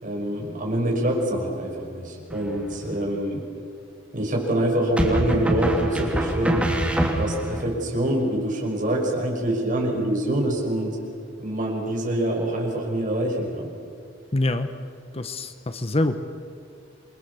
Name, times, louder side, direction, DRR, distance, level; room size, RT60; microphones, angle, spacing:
voice 1, 0.0-3.4 4.1-6.7 7.2-11.0 11.4-13.7, right 1 dB, 45° right, 0 dB, 5.9 m, -25 dB
sound 1, 2.3-2.9 5.0-7.6, right 1 dB, 5° right, 3.0 m, -25 dB
voice 2, 14.3-14.7 15.1-16.2, left 2 dB, 30° left, 9 dB, 1.1 m, -25 dB
28.0 x 23.0 x 7.0 m, 2.4 s
head